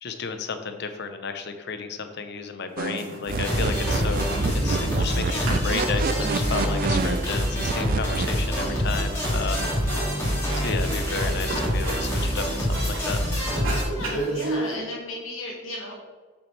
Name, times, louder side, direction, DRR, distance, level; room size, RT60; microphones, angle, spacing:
voice 1, 0.0-13.2, left 5 dB, 55° left, 8 dB, 0.7 m, -33 dB
sound 1, 2.7-2.8 3.0-3.6 3.9-5.2 5.4-13.2 13.5-14.7, right 2 dB, 85° right, 2.6 m, -34 dB
sound 2, 2.8-8.3, right 4 dB, 45° right, 0.4 m, -28 dB
sound 3, 3.4-13.8, equal, 15° left, 2.3 m, -26 dB
voice 2, 5.2-5.6 14.0-16.0, left 1 dB, 90° left, -3 dB, 2.1 m, -35 dB
7.4 x 7.3 x 3.3 m, 1.3 s
head